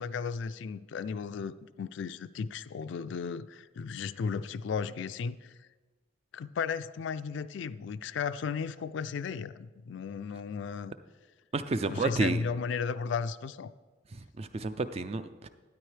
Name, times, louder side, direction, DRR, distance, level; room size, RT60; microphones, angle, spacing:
voice 1, 0.0-5.5 6.3-10.9 11.9-13.7, left 6 dB, 60° left, 14 dB, 0.3 m, -35 dB
voice 2, 11.5-12.4 14.1-15.5, right 3 dB, 30° right, 11 dB, 0.4 m, -31 dB
12.5 x 9.5 x 3.3 m, 1.3 s
head